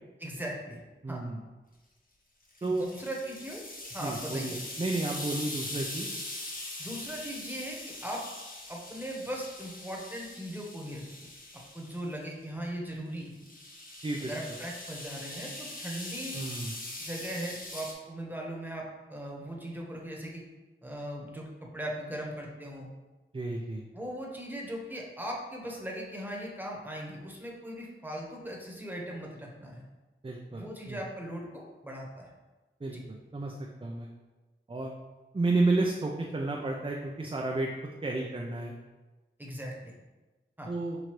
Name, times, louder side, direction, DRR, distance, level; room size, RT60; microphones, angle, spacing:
voice 1, 0.2-0.8 1.1-1.2 2.6-3.6 3.9-4.6 6.8-8.2 8.7-11.3 11.7-13.4 14.2-16.5 17.0-20.4 20.8-21.5 21.7-22.9 23.9-29.8 30.5-32.3 32.9-33.0 39.4-39.9 40.6-40.7, right 1 dB, 10° right, -2 dB, 1.1 m, -39 dB
voice 2, 1.0-1.4 2.6-2.9 4.0-6.1 14.0-14.3 16.3-16.7 23.3-23.8 30.2-31.0 32.8-34.1 34.7-34.9 35.3-37.7 38.0-38.7 40.7-41.0, right 2 dB, 25° right, 0 dB, 0.5 m, -31 dB
sound 1, 2.5-12.1 13.2-17.9, left 2 dB, 40° left, 0.9 m, -42 dB
5.9 x 2.6 x 3.2 m, 1.2 s
cardioid pair, 45°, 21 cm